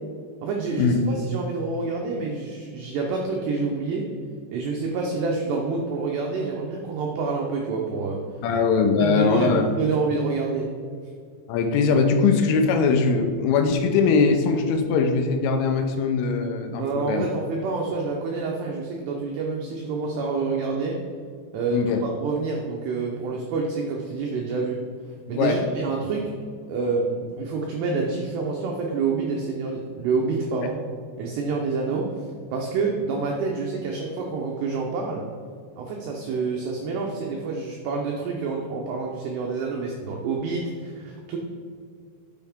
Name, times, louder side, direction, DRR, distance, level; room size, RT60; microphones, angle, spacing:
voice 1, 0.4-4.0 4.5-8.2 9.0-10.7 16.8-21.0 21.5-24.8 25.3-26.2 26.7-30.8 31.2-32.1 32.5-35.2 35.8-41.4, right 4 dB, 85° right, 0 dB, 2.4 m, -27 dB
voice 2, 8.4-9.7 11.5-17.3 21.7-22.0 25.4-25.6, left 5 dB, 80° left, 5 dB, 3.2 m, -21 dB
10.5 x 6.3 x 3.5 m, 2.2 s
omnidirectional pair, 5.8 m